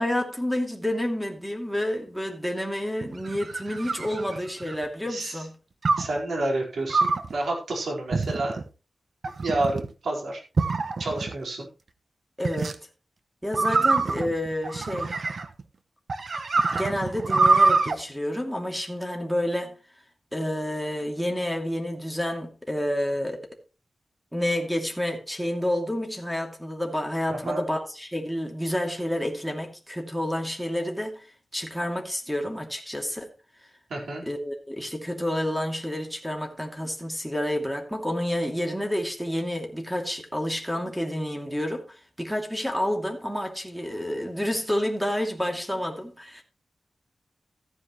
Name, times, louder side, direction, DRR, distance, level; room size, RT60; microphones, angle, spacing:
voice 1, 0.0-5.5 12.4-12.8 13.4-15.2 16.7-19.7 20.3-23.4 24.3-31.3 31.5-33.3 34.3-46.4, left 1 dB, ahead, 2.6 m, -29 dB
sound 1, 3.0-4.8 5.8-6.2 6.9-7.3 8.1-8.6 9.2-9.9 10.6-11.3 12.4-12.7 13.5-15.6 16.1-17.9, right 3 dB, 55° right, 1.1 m, -25 dB
voice 2, 5.0-5.5 6.0-8.6 9.4-10.4 11.0-11.7 27.3-27.6 33.9-34.2, right 2 dB, 90° right, 4.5 m, -29 dB
14.5 x 9.6 x 3.1 m
wide cardioid pair, 120°, 0 cm